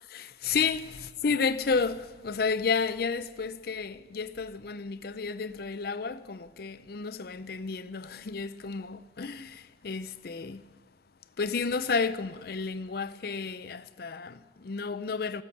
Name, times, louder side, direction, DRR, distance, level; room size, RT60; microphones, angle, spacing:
voice 1, 0.1-10.7 11.4-15.4, left 5 dB, 55° left, 0.5 m, -31 dB
14.5 x 8.8 x 9.1 m
head